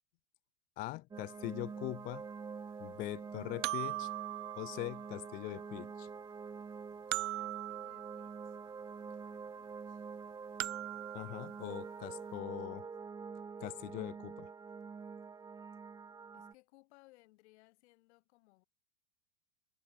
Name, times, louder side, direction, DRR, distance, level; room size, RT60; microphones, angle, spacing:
voice 1, 0.8-2.2 2.8-4.1 4.6-6.1 11.1-12.9 13.6-14.5, left 20 dB, 20° left, 0.7 m, -42 dB
sound 1, 1.1-16.5, right 5 dB, 10° right, 1.4 m, -46 dB
sound 2, 1.2-1.3 3.6-5.5 7.1-8.8 10.6-12.0, right 17 dB, 55° right, 0.8 m, -41 dB
voice 2, 7.4-8.6 9.0-10.1 16.3-18.6, left 21 dB, 50° left, 6.7 m, -66 dB
supercardioid pair, 160°, 44 cm